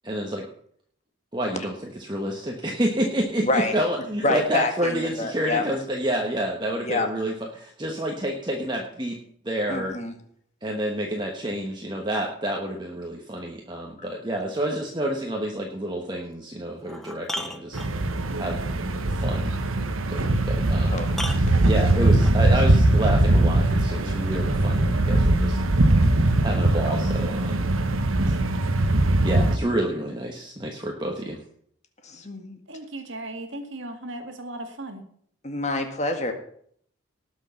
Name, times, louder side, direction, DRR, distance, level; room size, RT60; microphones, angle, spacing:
voice 1, 0.0-0.4 1.3-9.2 9.4-10.0 10.6-18.6 19.1-19.5 20.1-21.0 21.6-25.6 26.0-27.7 29.2-31.4, right 1 dB, 20° right, 1 dB, 1.3 m, -29 dB
voice 2, 3.4-3.7 4.2-5.7 6.8-7.1 9.7-10.1 20.9-21.2 26.9-27.0 32.0-32.6 35.4-36.3, left 2 dB, 35° left, 5 dB, 1.8 m, -27 dB
sound 1, 16.2-16.3 16.8-18.3 20.3-20.4 21.1-22.4 23.8-23.9, equal, ahead, 0.8 m, -35 dB
sound 2, 17.7-29.6, right 2 dB, 80° right, 1.2 m, -21 dB
voice 3, 32.7-35.0, right 1 dB, 65° right, 6 dB, 1.9 m, -36 dB
18.5 x 6.3 x 5.8 m, 0.63 s
head